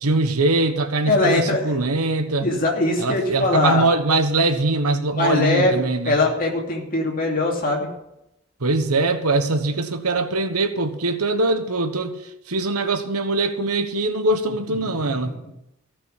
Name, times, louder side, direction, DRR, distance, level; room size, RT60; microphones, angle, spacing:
voice 1, 0.0-2.5 3.0-6.2 8.6-15.3, right 2 dB, 85° right, 9 dB, 1.3 m, -22 dB
voice 2, 1.1-1.8 2.4-3.8 5.2-7.9 14.8-15.3, left 2 dB, 40° left, -1 dB, 2.7 m, -21 dB
15.0 x 6.3 x 8.2 m, 0.87 s
head